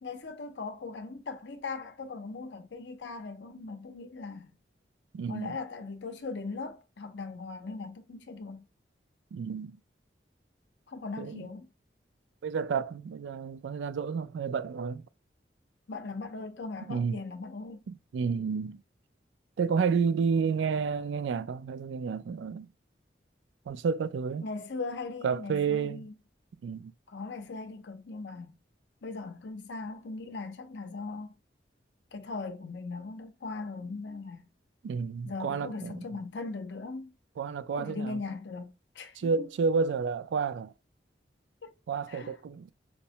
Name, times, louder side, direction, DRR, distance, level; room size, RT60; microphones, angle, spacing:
voice 1, 0.0-4.5 5.3-8.7 10.9-11.7 15.9-17.8 24.4-26.1 27.1-28.5 29.0-31.3 32.1-34.5 35.2-37.1 37.8-39.3 41.6-41.7 42.1-42.3, left 3 dB, 75° left, 0.5 m, -39 dB
voice 2, 5.1-5.6 9.3-9.8 11.2-11.5 12.4-15.0 16.9-17.2 17.9-18.8 19.6-22.7 23.7-24.4 25.2-26.0 26.6-26.9 34.8-36.2 37.4-38.2 39.2-40.7 41.9-42.7, right 5 dB, 85° right, 0.3 m, -30 dB
4.4 x 2.0 x 2.7 m
head